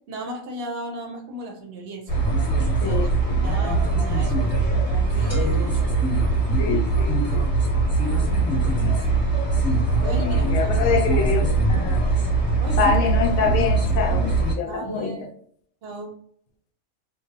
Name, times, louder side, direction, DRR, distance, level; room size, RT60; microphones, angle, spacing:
voice 1, 0.1-2.4 2.8-6.0 8.0-9.3 10.0-11.2 12.6-12.8 14.6-15.3 15.8-16.1, right 1 dB, 60° right, 2 dB, 0.7 m, -36 dB
sound 1, 2.1-14.5, right 3 dB, 15° left, 1.2 m, -21 dB
voice 2, 2.8-3.5 6.6-7.6 10.2-12.0 12.7-14.3 14.6-15.1, left 5 dB, 80° left, 3 dB, 1.0 m, -26 dB
sound 2, 5.3-7.2, left 4 dB, ahead, 0.5 m, -38 dB
3.0 x 2.1 x 2.7 m, 0.62 s
omnidirectional pair, 1.5 m